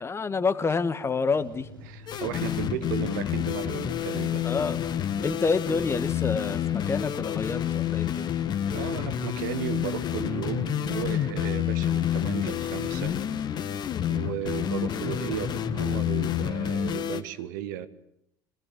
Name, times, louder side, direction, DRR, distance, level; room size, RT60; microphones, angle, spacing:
voice 1, 0.0-1.7 4.4-4.8 5.2-8.3, left 4 dB, 25° left, 11 dB, 1.6 m, -28 dB
sound 1, 1.3-8.5, equal, 85° right, 5.1 m, -47 dB
voice 2, 1.8-4.5 8.7-13.2 14.1-17.9, right 11 dB, 65° right, 11 dB, 1.5 m, -35 dB
sound 2, 2.1-17.2, left 10 dB, 40° left, 1.7 m, -29 dB
25.0 x 19.0 x 7.7 m, 0.80 s
figure-of-eight pair, 65°, 11 cm